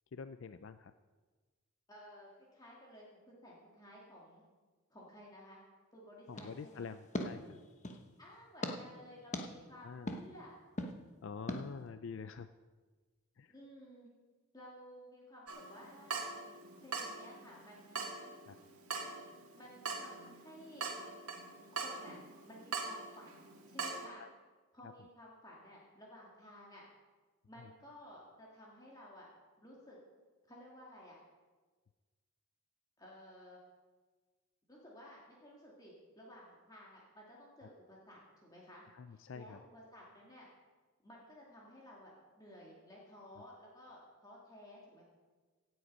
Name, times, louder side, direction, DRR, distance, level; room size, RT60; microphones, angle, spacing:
voice 1, 0.1-0.9 6.3-7.6 9.8-10.1 11.2-12.5 13.4-13.5 18.5-18.6 24.2-24.3 38.9-39.6, left 5 dB, 60° left, 11 dB, 0.4 m, -46 dB
voice 2, 1.9-4.4 4.9-5.6 5.9-6.9 8.2-10.5 13.5-14.1 14.5-16.3 16.8-18.1 19.5-20.9 21.7-22.2 22.4-24.2 24.7-26.9 27.5-29.3 29.6-30.0 30.4-31.2 33.0-33.6 34.7-38.8 39.1-40.5 41.0-45.0, equal, 15° left, -4 dB, 2.1 m, -55 dB
sound 1, 6.3-8.1 8.6-8.7 9.3-9.4 10.1-10.2 10.8-10.9 11.5-11.6, left 1 dB, 35° left, 1.0 m, -40 dB
Water tap faucet / Drip, 15.5-24.1, right 4 dB, 85° right, 1.7 m, -43 dB
17.0 x 7.9 x 5.4 m, 1.4 s
head